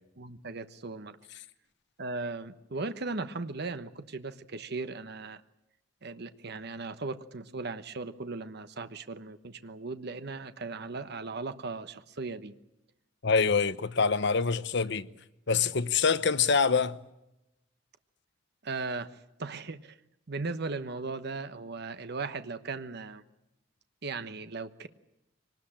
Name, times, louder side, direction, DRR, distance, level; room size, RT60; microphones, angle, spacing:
voice 1, 0.2-1.2 2.0-5.4 6.0-12.6 18.6-20.0 20.3-23.2 24.0-24.9, right 3 dB, 60° right, 1.1 m, -37 dB
voice 2, 13.2-15.1 15.5-17.0, left 5 dB, 65° left, 1.0 m, -25 dB
24.0 x 19.5 x 8.8 m
head